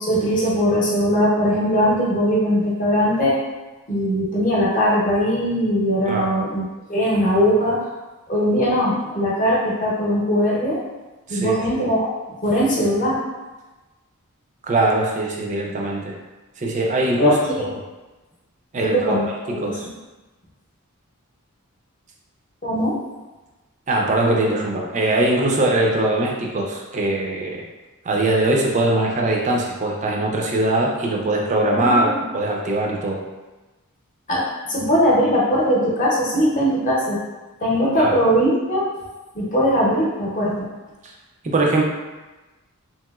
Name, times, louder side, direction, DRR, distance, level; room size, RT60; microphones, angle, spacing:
voice 1, 0.0-3.3 3.9-6.6 6.9-7.9 8.3-10.8 11.3-12.1 12.4-13.2 17.2-17.7 18.7-19.9 22.6-23.0 31.7-32.3 34.3-34.4 34.7-37.2 37.6-38.8 39.3-40.7, equal, 35° left, -5 dB, 0.8 m, -20 dB
voice 2, 11.3-11.8 14.6-16.2 16.6-17.7 18.7-19.9 23.9-27.7 28.0-33.2 37.9-38.2 41.4-41.9, right 2 dB, 35° right, -1 dB, 0.4 m, -21 dB
2.9 x 2.9 x 2.3 m, 1.1 s
head